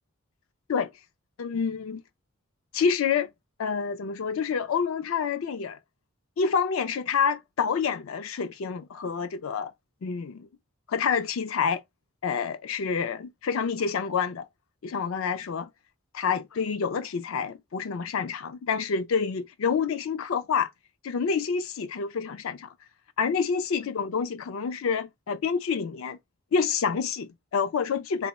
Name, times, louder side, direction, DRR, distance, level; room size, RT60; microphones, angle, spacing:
voice 1, 1.4-2.0 2.7-3.3 3.6-5.8 6.4-9.7 10.0-10.5 10.9-11.8 12.2-14.4 14.8-15.7 16.1-20.7 21.0-22.7 23.2-26.2 26.5-28.3, left 6 dB, 70° left, 0.4 m, -28 dB
3.2 x 2.3 x 4.1 m
head